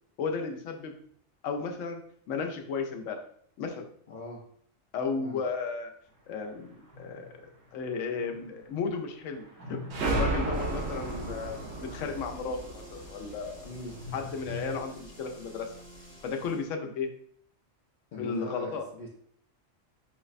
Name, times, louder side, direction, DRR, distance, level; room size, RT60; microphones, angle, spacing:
voice 1, 0.2-0.9 1.4-2.0 2.3-3.2 3.6-3.9 4.9-5.9 6.3-7.2 7.7-9.8 10.1-13.7 14.1-15.7 16.2-17.1 18.2-18.8, left 5 dB, 80° left, 4 dB, 0.9 m, -34 dB
voice 2, 4.1-4.4 5.2-5.4 13.6-14.0 18.1-19.1, left 3 dB, 60° left, -2 dB, 0.4 m, -41 dB
sound 1, 6.1-14.8, left 3 dB, 85° right, 1.9 m, -47 dB
sound 2, 9.9-14.4, right 2 dB, 65° right, 0.8 m, -33 dB
sound 3, 10.5-16.7, equal, 35° left, 1.1 m, -51 dB
5.3 x 2.1 x 2.4 m, 0.64 s
omnidirectional pair, 1.3 m